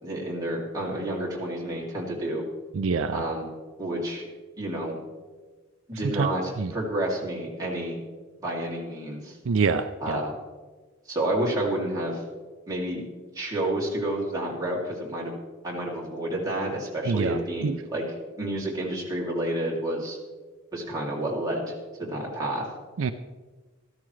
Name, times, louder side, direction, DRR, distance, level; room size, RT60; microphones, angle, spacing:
voice 1, 0.0-2.4 3.1-3.5 3.8-4.3 4.6-5.0 5.9-8.0 8.4-9.4 10.0-10.4 11.1-12.2 12.7-13.0 13.3-15.4 15.6-18.0 18.4-20.2 20.7-21.7 22.0-22.7, right 1 dB, 20° right, -4 dB, 2.7 m, -30 dB
voice 2, 2.7-3.2 6.1-6.3 6.6-6.7 9.5-10.2 17.1-17.8 23.0-23.1, right 5 dB, 70° right, 9 dB, 0.4 m, -26 dB
13.5 x 13.0 x 3.2 m, 1.4 s
head